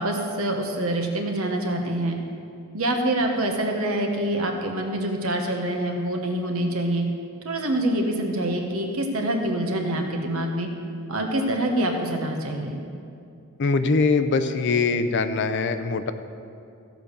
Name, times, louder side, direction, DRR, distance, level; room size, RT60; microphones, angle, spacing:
voice 1, 0.0-2.2 2.7-7.0 7.4-10.7 11.1-12.8, right 1 dB, 65° right, 3 dB, 1.3 m, -25 dB
voice 2, 13.6-16.1, left 4 dB, 50° left, 10 dB, 0.5 m, -22 dB
15.0 x 5.1 x 6.7 m, 2.5 s
head